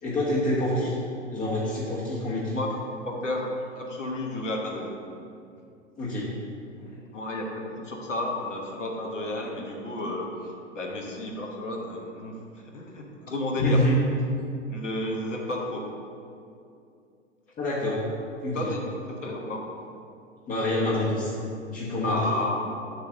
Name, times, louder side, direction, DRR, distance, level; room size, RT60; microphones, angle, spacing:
voice 1, 0.0-0.9 1.3-2.6 6.0-6.3 13.6-14.0 17.6-18.0 18.4-18.7 20.5-21.4 21.7-22.3, left 1 dB, 20° left, -6 dB, 1.2 m, -26 dB
voice 2, 3.1-5.0 7.1-12.4 12.7-13.8 14.7-15.9 18.5-19.7 22.0-22.6, left 1 dB, 75° left, 1 dB, 1.2 m, -32 dB
8.2 x 3.3 x 6.3 m, 2.5 s
figure-of-eight pair, 95°, 37 cm